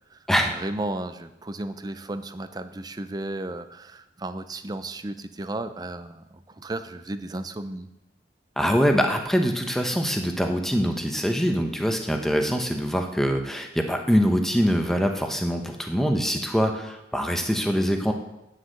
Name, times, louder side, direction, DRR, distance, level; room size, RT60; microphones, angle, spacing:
voice 1, 0.5-7.9, right 2 dB, 20° right, 11 dB, 0.5 m, -34 dB
voice 2, 8.6-18.1, equal, ahead, 4 dB, 0.9 m, -24 dB
9.5 x 6.5 x 7.7 m, 0.91 s
head